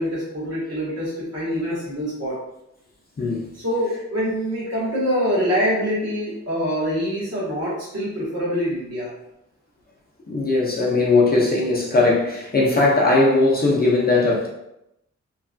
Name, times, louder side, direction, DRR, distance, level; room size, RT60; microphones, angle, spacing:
voice 1, 0.0-2.4 3.6-9.1, equal, 60° right, -8 dB, 1.3 m, -25 dB
voice 2, 3.2-3.5 10.3-14.5, left 2 dB, 30° left, -4 dB, 0.5 m, -19 dB
3.1 x 2.2 x 2.5 m, 0.85 s
wide cardioid pair, 160°, 30 cm